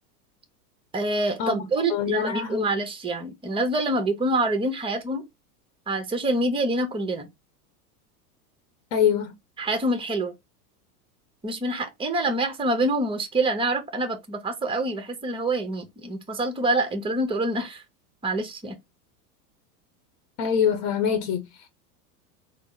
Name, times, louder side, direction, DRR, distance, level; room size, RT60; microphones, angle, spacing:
voice 1, 0.9-5.2 5.9-7.3 9.6-10.3 11.4-17.8 18.2-18.8, right 2 dB, 10° right, 0.8 m, -26 dB
voice 2, 1.9-2.7 8.9-9.3 20.4-21.7, left 8 dB, 55° left, 0.9 m, -24 dB
3.9 x 2.0 x 3.6 m
hypercardioid pair, 105°, 47 cm